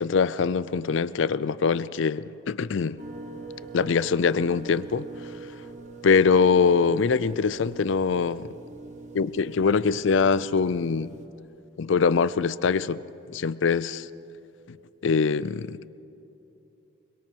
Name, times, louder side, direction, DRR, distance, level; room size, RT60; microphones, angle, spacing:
voice 1, 0.0-3.0 3.7-5.4 6.0-8.5 9.1-11.1 11.8-13.0 13.3-14.1 14.7-14.8 15.0-15.8, left 5 dB, 60° left, 0.4 m, -23 dB
sound 1, 3.0-11.3, right 3 dB, 35° right, 1.5 m, -43 dB
25.0 x 23.0 x 4.6 m
head